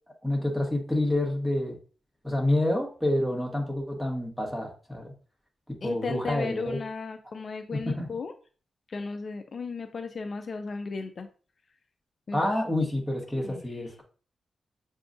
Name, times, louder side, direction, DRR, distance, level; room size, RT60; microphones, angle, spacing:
voice 1, 0.2-1.8 2.2-5.1 5.7-6.8 7.7-8.1 12.3-14.0, left 1 dB, ahead, 0 dB, 1.3 m, -28 dB
voice 2, 5.8-8.3 8.9-11.3 12.3-12.5 13.4-13.6, left 4 dB, 55° left, 6 dB, 0.4 m, -35 dB
6.7 x 2.3 x 2.6 m, 0.39 s
cardioid pair, 80°, 0 cm